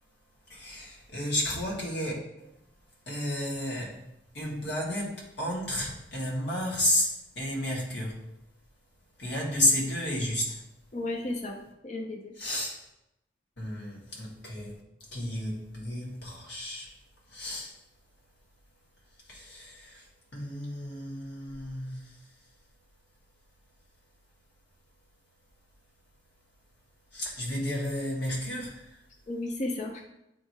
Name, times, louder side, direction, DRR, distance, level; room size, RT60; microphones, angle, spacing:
voice 1, 0.5-2.6 3.0-4.1 4.3-8.2 9.2-10.6 12.3-12.8 13.6-14.8 15.1-16.9 17.3-17.8 19.2-22.3 27.1-29.0, left 1 dB, 65° left, -3 dB, 1.7 m, -32 dB
voice 2, 10.9-11.6 11.8-12.3 29.3-30.0, left 2 dB, 40° left, 2 dB, 0.6 m, -33 dB
8.3 x 2.8 x 4.6 m, 0.86 s
head